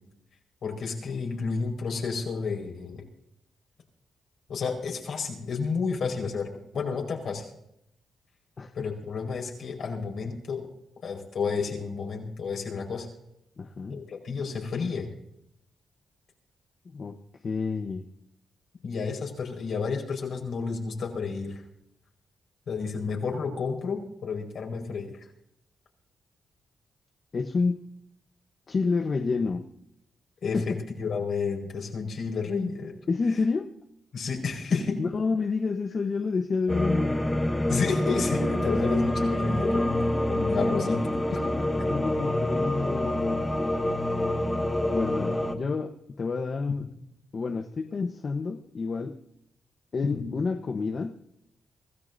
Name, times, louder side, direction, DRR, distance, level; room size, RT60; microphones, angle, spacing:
voice 1, 0.6-3.0 4.5-6.5 6.7-7.4 8.7-10.7 11.0-13.1 13.9-15.1 18.8-21.6 22.7-25.1 30.4-32.9 34.1-35.0 37.7-39.9 40.3-41.6 50.1-50.3, left 5 dB, 65° left, 1 dB, 4.9 m, -31 dB
voice 2, 8.6-8.9 13.6-14.0 16.9-17.2 17.4-18.1 27.3-27.8 28.7-29.6 30.5-30.8 33.1-33.7 35.0-37.2 41.6-43.5 44.9-46.9 47.3-49.2 49.9-51.2, left 4 dB, 45° left, 5 dB, 1.1 m, -29 dB
sound 1, 36.7-45.6, left 1 dB, 10° left, 1.7 m, -26 dB
25.5 x 14.5 x 2.7 m, 0.78 s
cardioid pair, 80°, 0 cm